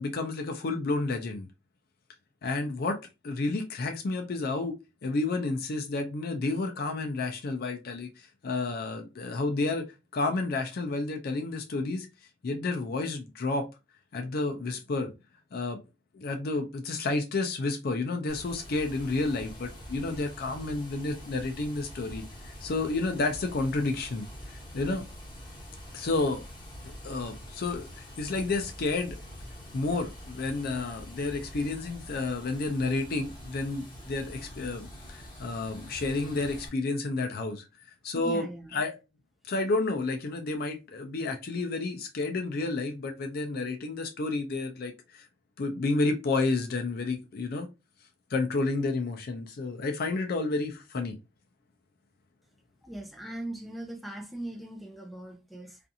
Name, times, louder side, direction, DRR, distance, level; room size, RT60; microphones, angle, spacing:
voice 1, 0.0-1.5 2.4-3.0 3.2-4.7 5.0-9.9 10.1-12.1 12.4-13.7 14.1-15.1 15.5-15.8 16.1-25.1 25.9-26.4 27.0-29.2 29.7-37.6 38.0-38.5 38.7-38.9 39.5-45.2 45.6-47.7 48.3-51.2, left 3 dB, 55° left, 0.4 m, -30 dB
Water, 18.3-36.7, equal, 25° left, 1.2 m, -45 dB
voice 2, 38.1-38.8 52.8-55.8, right 1 dB, ahead, 0.5 m, -40 dB
2.5 x 2.4 x 2.7 m
head